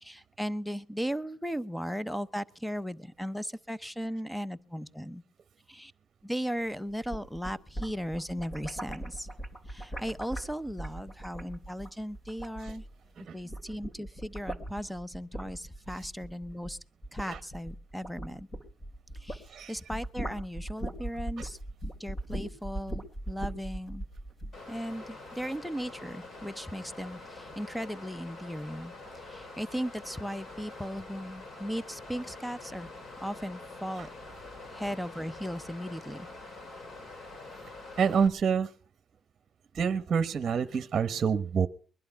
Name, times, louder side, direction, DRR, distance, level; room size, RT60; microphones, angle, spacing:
voice 1, 0.0-5.2 5.7-5.9 6.2-9.3 9.7-12.8 13.3-16.8 17.1-18.5 19.2-21.6 22.0-24.0 24.7-28.9 29.3-32.9 33.2-34.1 34.7-36.3, equal, ahead, 0.8 m, -37 dB
sound 1, 6.9-13.1 13.4-19.5 19.8-24.6, right 1 dB, 30° left, 2.8 m, -39 dB
Water, 24.5-38.3, left 2 dB, 45° left, 4.2 m, -46 dB
voice 2, 38.0-38.7 39.7-41.7, right 6 dB, 50° right, 1.0 m, -27 dB
21.5 x 11.5 x 5.7 m
cardioid pair, 90°, 0 cm